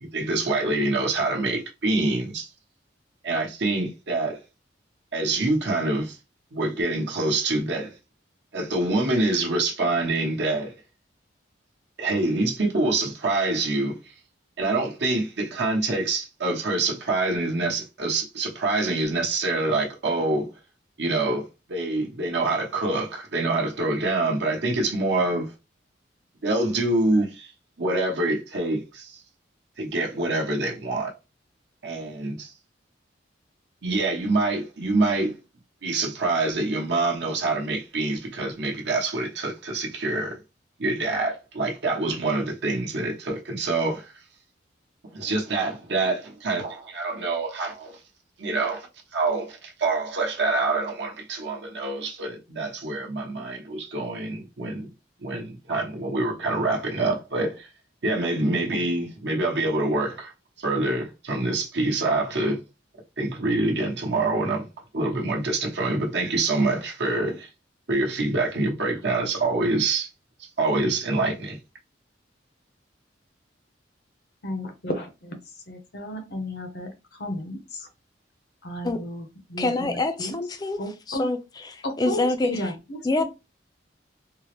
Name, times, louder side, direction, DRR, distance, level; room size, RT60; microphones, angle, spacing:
voice 1, 0.0-2.5 3.2-4.4 5.1-6.2 6.5-7.9 8.5-10.7 12.0-14.1 14.6-20.5 21.0-25.5 26.4-27.5 27.8-29.2 29.8-31.1 31.8-32.5 33.8-35.4 35.8-40.4 40.8-44.1 45.1-48.0 48.4-48.9 49.1-54.9 55.2-57.7 58.0-60.3 60.6-62.6 63.2-64.7 64.9-67.5 67.9-70.1 70.6-71.6, right 2 dB, 65° right, 0.9 m, -26 dB
voice 2, 74.4-75.4 75.7-77.9 78.6-80.3 80.8-81.3 81.8-83.2, left 1 dB, 55° left, 0.7 m, -33 dB
voice 3, 79.6-80.8 81.1-81.4 81.6-82.7 83.0-83.2, left 2 dB, 20° left, 0.4 m, -26 dB
3.7 x 2.0 x 2.9 m
head